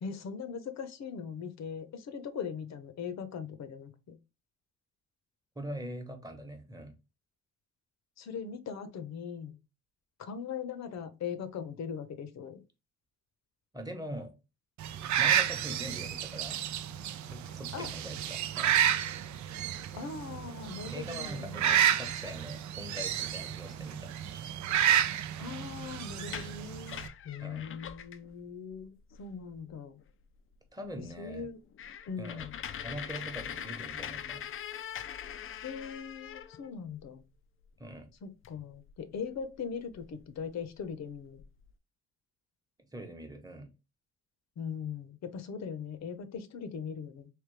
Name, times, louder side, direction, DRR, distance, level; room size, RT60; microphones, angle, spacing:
voice 1, 0.0-4.2 8.2-9.6 10.2-12.6 17.7-17.9 19.9-21.9 25.4-27.0 27.2-30.0 31.2-31.6 32.1-32.5 35.6-37.2 38.2-41.4 44.6-47.3, left 6 dB, 60° left, 0.8 m, -40 dB
voice 2, 5.6-6.9 13.7-14.3 15.2-16.6 17.2-18.8 20.9-24.1 27.4-27.7 30.7-31.5 32.2-32.5 32.8-34.4 37.8-38.1 42.9-43.7, right 1 dB, 10° right, 1.1 m, -42 dB
sound 1, 14.8-27.1, right 10 dB, 70° right, 0.5 m, -31 dB
sound 2, 26.1-28.3 28.7-28.8 29.1-29.5 30.0-30.1 30.5-30.6 30.9-31.0 31.4-37.0 38.4-38.6 38.9-40.2 40.8-40.9 41.1-41.7, left 9 dB, 45° left, 0.4 m, -42 dB
3.3 x 3.0 x 3.2 m
cardioid pair, 90°, 30 cm